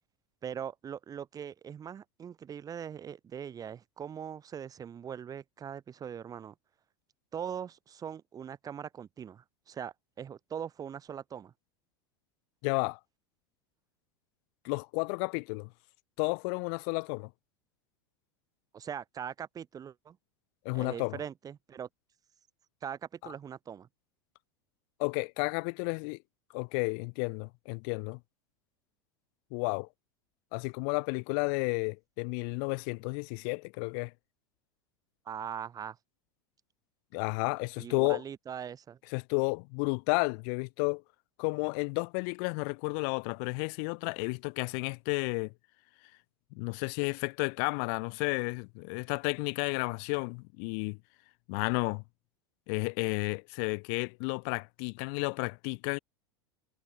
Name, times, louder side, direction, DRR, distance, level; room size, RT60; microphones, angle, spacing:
voice 1, 0.4-6.5 7.3-11.5 18.7-20.2 20.7-21.9 22.8-23.9 35.3-36.0 37.8-39.0, right 8 dB, 30° right, 5.3 m, -41 dB
voice 2, 12.6-13.0 14.6-15.7 16.2-17.3 20.6-21.2 25.0-26.2 26.5-28.2 29.5-29.9 30.5-34.1 37.1-38.2 39.1-41.0 41.4-45.5 46.5-51.0 51.5-52.0 52.7-56.0, left 40 dB or more, 60° left, 2.5 m, -32 dB
hypercardioid pair, 90°, 12 cm